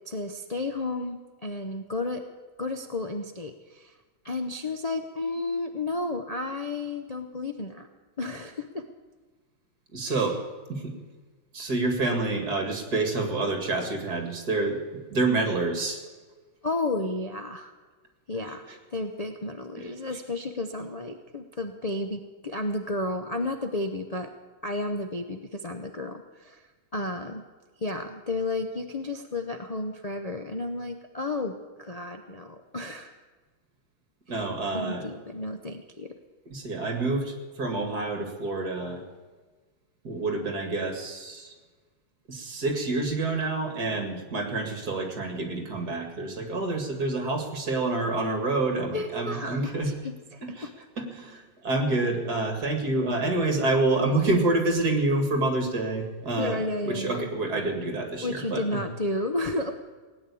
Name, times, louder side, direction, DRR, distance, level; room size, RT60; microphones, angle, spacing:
voice 1, 0.1-2.2 2.6-3.9 4.2-7.9 8.2-8.9 10.1-10.3 16.6-17.7 18.3-18.6 18.9-24.3 24.6-26.6 26.9-27.4 27.8-33.1 34.3-34.4 34.7-36.1 48.9-50.7 56.3-57.2 58.2-59.7, left 2 dB, 80° left, 5 dB, 0.3 m, -32 dB
voice 2, 9.9-10.4 10.7-10.9 11.5-14.8 15.1-16.0 18.4-18.5 19.8-19.9 34.3-35.1 36.5-39.0 40.0-41.5 42.3-49.9 50.4-50.7 51.0-58.8, right 2 dB, 50° right, 5 dB, 2.7 m, -28 dB
18.0 x 9.5 x 8.4 m, 1.4 s
omnidirectional pair, 2.2 m